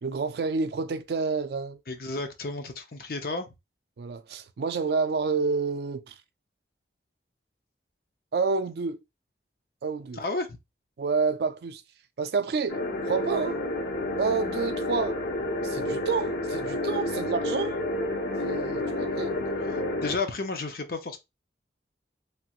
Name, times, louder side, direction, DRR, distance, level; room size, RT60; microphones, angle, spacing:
voice 1, 0.0-1.8 4.0-6.2 8.3-9.0 9.8-10.2 11.0-11.8 12.2-13.6 14.2-15.2 15.6-17.8 18.4-19.4, right 4 dB, 65° right, 0.4 m, -29 dB
voice 2, 1.9-3.5 10.2-10.5 20.0-21.2, left 3 dB, 55° left, 0.6 m, -32 dB
sound 1, 12.7-20.2, left 1 dB, 80° left, 0.9 m, -30 dB
3.2 x 2.9 x 2.3 m
head